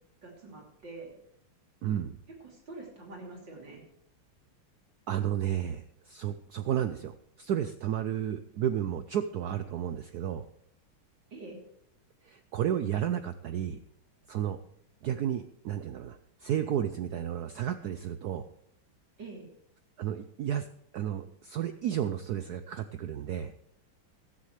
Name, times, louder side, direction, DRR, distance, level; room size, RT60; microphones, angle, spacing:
voice 1, 0.2-1.1 2.3-3.8 11.3-11.6 19.2-19.5, right 3 dB, 55° right, 0 dB, 3.8 m, -45 dB
voice 2, 1.8-2.1 5.1-10.4 12.2-13.8 14.3-14.6 15.0-18.4 20.0-20.7 20.9-23.5, right 10 dB, 85° right, 10 dB, 0.8 m, -32 dB
16.0 x 12.5 x 3.2 m, 0.74 s
omnidirectional pair, 2.4 m